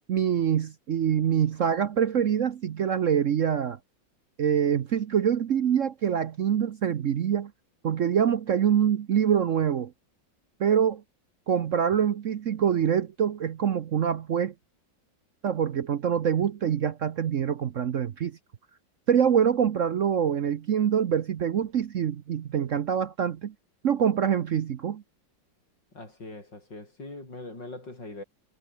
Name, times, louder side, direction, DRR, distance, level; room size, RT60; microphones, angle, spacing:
voice 1, 0.1-3.8 4.4-7.5 7.8-9.9 10.6-11.0 11.5-14.5 15.4-18.4 19.1-23.5 23.8-25.0, right 8 dB, 55° right, 1.0 m, -25 dB
voice 2, 25.9-28.2, left 2 dB, 75° left, 8.3 m, -41 dB
omnidirectional pair, 2.0 m